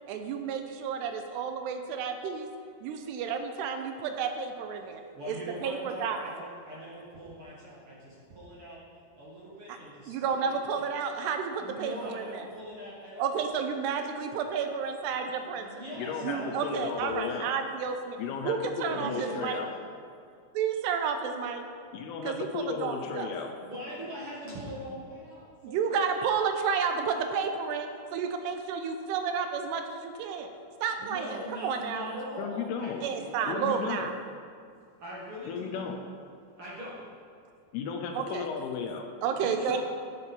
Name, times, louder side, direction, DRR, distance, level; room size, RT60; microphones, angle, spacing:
voice 1, 0.1-2.5 2.8-5.0 5.3-6.3 9.7-9.8 10.1-12.5 13.2-15.7 16.2-18.2 18.5-19.6 20.6-21.6 22.2-23.3 25.6-30.5 30.8-32.1 33.0-34.1 38.1-38.5 39.2-39.8, right 6 dB, 80° right, 6 dB, 2.7 m, -31 dB
voice 2, 5.1-8.8 9.1-10.2 10.4-10.9 11.6-13.4 15.6-16.7 17.0-17.5 18.9-19.7 23.6-26.0 31.0-33.6 35.0-35.9 36.6-37.1 39.4-39.8, equal, 50° right, -6 dB, 1.7 m, -41 dB
voice 3, 16.0-17.5 18.2-19.7 21.9-23.5 32.4-33.0 33.5-34.1 35.5-36.0 37.7-39.1, left 6 dB, 80° left, 4 dB, 2.5 m, -34 dB
11.0 x 10.0 x 4.3 m, 2.3 s
omnidirectional pair, 4.9 m